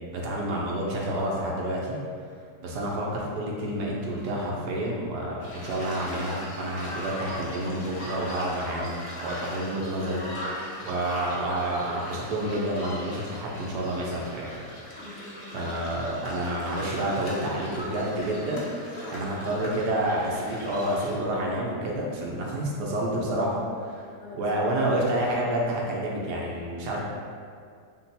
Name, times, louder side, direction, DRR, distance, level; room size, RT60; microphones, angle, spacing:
voice 1, 0.1-2.0 2.6-14.7 15.5-24.0 24.3-27.0, right 1 dB, 80° right, -3 dB, 1.4 m, -29 dB
sound 1, 5.4-21.1, equal, 40° left, 0.7 m, -39 dB
voice 2, 15.0-15.6 18.9-19.3 24.1-24.5 24.8-24.9 26.9-27.0, left 1 dB, 60° left, -5 dB, 1.0 m, -45 dB
5.5 x 2.2 x 4.1 m, 2.2 s
omnidirectional pair, 1.7 m